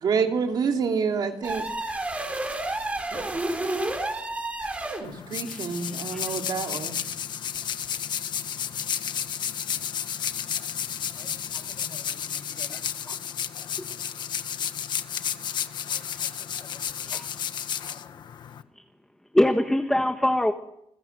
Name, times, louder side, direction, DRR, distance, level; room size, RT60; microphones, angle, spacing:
voice 1, 0.0-1.7 3.1-3.2 5.0-7.0, right 6 dB, 45° right, 3 dB, 2.7 m, -27 dB
sound 1, 1.4-5.1, right 2 dB, 15° right, 4.7 m, -30 dB
sound 2, 5.0-18.6, left 8 dB, 50° left, 1.4 m, -32 dB
voice 2, 5.8-6.3 12.7-12.8 13.1-13.2 17.1-17.2 19.3-20.5, left 1 dB, 5° left, 5 dB, 1.4 m, -24 dB
voice 3, 11.2-13.2 15.9-16.3 16.6-17.2 17.9-18.1, left 3 dB, 20° left, 6 dB, 6.1 m, -51 dB
29.0 x 22.0 x 8.0 m, 0.80 s
cardioid pair, 180°, 10 cm